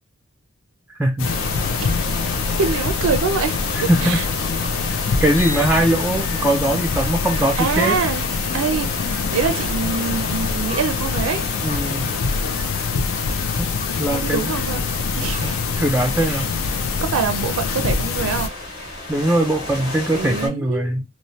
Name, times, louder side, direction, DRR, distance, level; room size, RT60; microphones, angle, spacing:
voice 1, 1.0-1.3 3.9-4.2 5.2-8.0 11.6-12.1 13.6-13.7 14.0-14.5 15.4-16.5 19.1-21.0, right 1 dB, 10° right, 0.3 m, -21 dB
sound 1, 1.2-18.5, left 5 dB, 80° left, 0.4 m, -24 dB
sound 2, 1.2-20.5, left 1 dB, 55° left, 1.6 m, -32 dB
voice 2, 2.6-4.2 4.6-4.7 7.6-8.3 8.5-8.9 9.3-11.4 14.1-14.8 15.2-15.6 16.2-16.4 17.0-18.5 20.1-20.9, right 5 dB, 80° right, 0.4 m, -24 dB
3.1 x 2.0 x 2.7 m
head